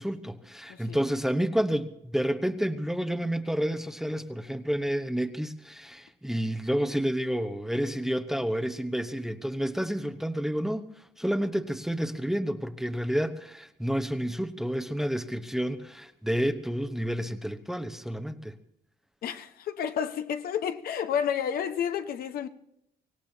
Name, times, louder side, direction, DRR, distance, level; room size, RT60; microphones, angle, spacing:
voice 1, 0.0-10.9 11.2-18.6, equal, ahead, 1.0 m, -30 dB
voice 2, 0.7-1.0 19.2-22.5, left 8 dB, 60° left, 1.1 m, -30 dB
24.5 x 17.5 x 2.8 m
cardioid pair, 110°, 17 cm